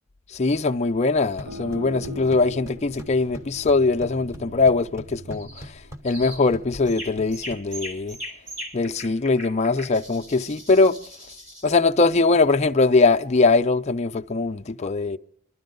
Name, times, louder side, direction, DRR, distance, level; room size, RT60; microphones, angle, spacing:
voice 1, 0.3-5.7 6.0-8.2 8.7-11.0 11.6-15.2, left 3 dB, 30° left, 0.5 m, -21 dB
sound 1, 1.2-8.2, equal, 15° right, 0.9 m, -43 dB
sound 2, 1.5-6.9, equal, 75° right, 1.0 m, -41 dB
sound 3, 5.3-5.7 6.0-6.5 6.9-11.8, equal, 60° right, 2.7 m, -39 dB
23.5 x 12.5 x 3.8 m
head